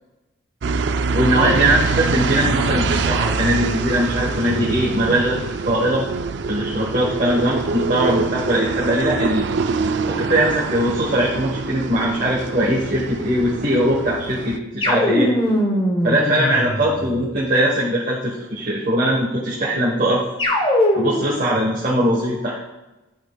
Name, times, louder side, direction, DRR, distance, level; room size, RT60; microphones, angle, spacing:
sound 1, 0.6-14.6, right 4 dB, 60° right, 0.4 m, -24 dB
voice 1, 1.1-6.0 6.5-9.4 10.1-15.3 16.0-20.2 20.9-22.6, right 1 dB, 40° right, -6 dB, 1.2 m, -20 dB
sound 2, 14.8-17.3 20.4-21.4, left 1 dB, 25° left, 1.0 m, -21 dB
10.5 x 6.0 x 2.3 m, 1.1 s
head